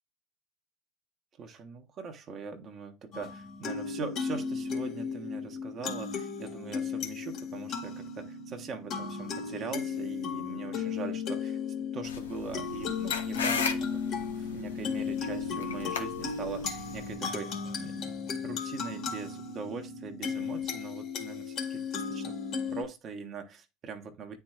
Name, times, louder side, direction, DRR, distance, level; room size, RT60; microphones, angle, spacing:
voice 1, 1.4-13.8 14.4-18.2 18.4-22.4 22.7-24.4, right 5 dB, 40° right, 1.0 m, -41 dB
sound 1, 3.1-22.8, left 6 dB, 50° left, 1.7 m, -35 dB
sound 2, 12.0-17.1, left 5 dB, 85° left, 0.8 m, -36 dB
9.5 x 4.5 x 2.3 m
hypercardioid pair, 75°, 0 cm